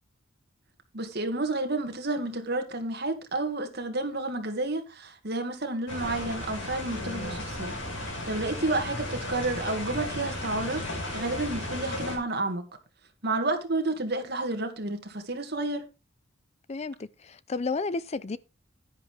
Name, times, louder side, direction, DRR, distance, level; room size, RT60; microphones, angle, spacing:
voice 1, 0.9-12.7 13.2-15.9, right 2 dB, 55° right, 2.1 m, -31 dB
sound 1, 5.9-12.2, left 1 dB, 80° left, 6.5 m, -35 dB
voice 2, 7.0-7.4 16.7-18.4, left 3 dB, 35° left, 0.5 m, -33 dB
10.5 x 10.5 x 3.4 m
head